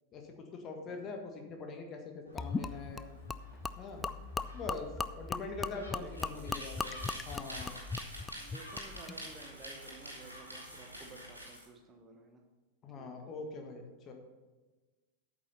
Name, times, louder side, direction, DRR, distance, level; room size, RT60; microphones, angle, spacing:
voice 1, 0.1-3.0 3.8-4.0 4.5-7.0 7.2-7.8 12.8-14.1, left 4 dB, 30° left, 3 dB, 1.6 m, -43 dB
Gull seagull, 2.3-11.3, equal, 85° left, 2.4 m, -54 dB
Gurgling / Liquid, 2.4-9.2, left 4 dB, 15° left, 0.3 m, -39 dB
voice 2, 2.7-3.0 5.4-6.7 7.1-7.4 8.4-12.4 13.0-13.3, right 3 dB, 20° right, 4 dB, 1.2 m, -52 dB
sound 1, 6.1-11.7, equal, 90° right, 2.4 m, -47 dB
8.7 x 7.5 x 5.6 m, 1.3 s
figure-of-eight pair, 90°, 0 cm